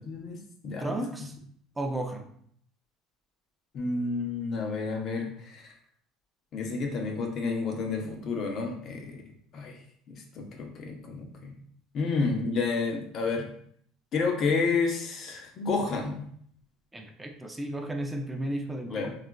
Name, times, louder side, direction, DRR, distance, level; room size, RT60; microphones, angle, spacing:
voice 1, 0.1-0.4 0.6-0.9 3.7-5.3 6.5-9.2 9.5-9.7 10.1-11.5 11.9-13.5 14.1-16.2 18.9-19.2, left 4 dB, 50° left, 2 dB, 0.7 m, -30 dB
voice 2, 0.8-1.3 1.8-2.3 16.9-19.1, right 1 dB, 15° right, 4 dB, 0.4 m, -33 dB
3.6 x 2.4 x 2.2 m, 0.63 s
supercardioid pair, 95°, 0 cm